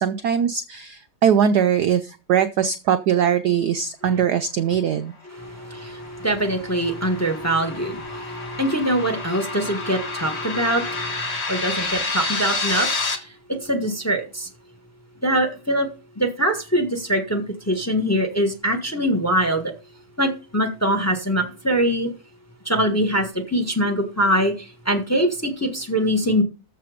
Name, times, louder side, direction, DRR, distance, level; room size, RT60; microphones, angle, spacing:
voice 1, 0.0-5.1, right 8 dB, 70° right, 0.9 m, -21 dB
sound 1, 5.4-13.1, left 3 dB, 35° left, 1.5 m, -29 dB
voice 2, 5.4-11.2 11.5-12.9 13.6-14.5 15.2-15.9 16.2-19.7 20.2-22.1 22.6-24.5 24.8-26.4, right 1 dB, 10° left, 1.2 m, -23 dB
14.0 x 5.9 x 5.0 m
omnidirectional pair, 2.4 m